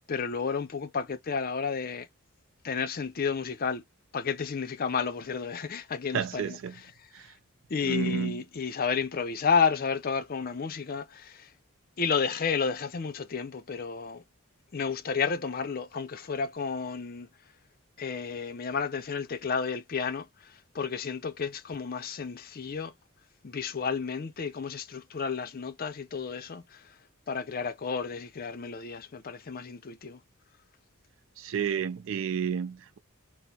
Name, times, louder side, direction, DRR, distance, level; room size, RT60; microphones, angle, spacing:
voice 1, 0.1-2.1 2.6-3.8 4.1-6.6 7.7-11.5 12.0-14.2 14.7-17.3 18.0-22.9 23.4-26.8 27.3-30.2, left 5 dB, 40° left, 0.5 m, -31 dB
voice 2, 6.1-6.8 7.1-7.3 7.8-8.4 31.4-33.0, right 7 dB, 60° right, 0.4 m, -31 dB
4.2 x 2.0 x 4.1 m
head